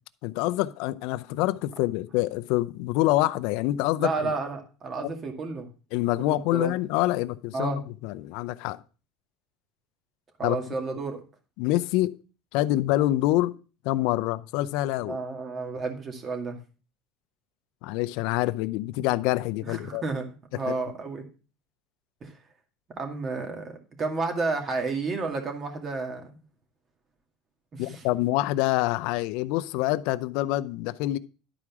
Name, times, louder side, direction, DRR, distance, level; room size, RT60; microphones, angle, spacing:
voice 1, 0.2-4.3 5.0-5.1 5.9-8.8 10.4-10.6 11.6-12.2 12.5-13.5 13.8-15.2 17.8-20.0 20.5-20.8 27.8-31.2, left 17 dB, 70° left, 0.6 m, -26 dB
voice 2, 4.0-5.7 6.2-6.7 7.5-7.8 10.4-11.2 15.1-16.6 19.7-20.3 20.6-21.2 22.2-22.3 23.0-26.3 27.7-28.0, right 3 dB, 30° right, 2.2 m, -31 dB
11.5 x 4.9 x 6.0 m
cardioid pair, 130°, 0 cm